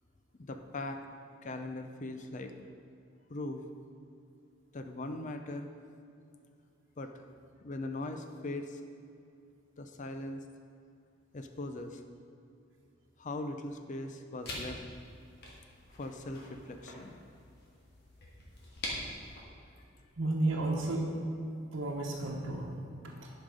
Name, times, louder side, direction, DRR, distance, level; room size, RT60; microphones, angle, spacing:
voice 1, 0.4-1.0 1.4-2.5 3.3-3.6 4.7-5.7 7.0-7.1 7.6-8.8 9.8-10.4 11.3-12.0 13.2-14.8 16.0-17.2, left 2 dB, 40° left, 6 dB, 0.5 m, -40 dB
sound 1, 14.4-19.4, left 1 dB, 55° left, 1.9 m, -44 dB
voice 2, 20.2-21.1 21.7-22.7 23.0-23.3, right 2 dB, 75° right, -2 dB, 1.0 m, -32 dB
10.5 x 5.3 x 5.2 m, 2.6 s
head